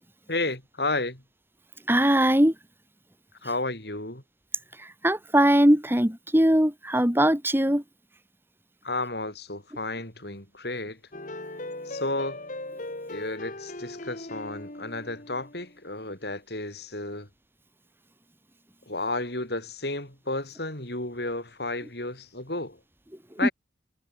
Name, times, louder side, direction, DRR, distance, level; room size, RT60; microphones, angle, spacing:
voice 1, 0.3-1.2 3.4-4.2 8.8-11.0 11.9-12.4 13.1-17.3 18.9-22.8 23.4-23.5, left 2 dB, 60° left, 7.0 m, -32 dB
voice 2, 1.9-2.5 4.8-7.8 23.4-23.5, right 1 dB, 10° right, 3.1 m, -21 dB
sound 1, 11.1-15.8, left 2 dB, 45° left, 2.8 m, -39 dB
head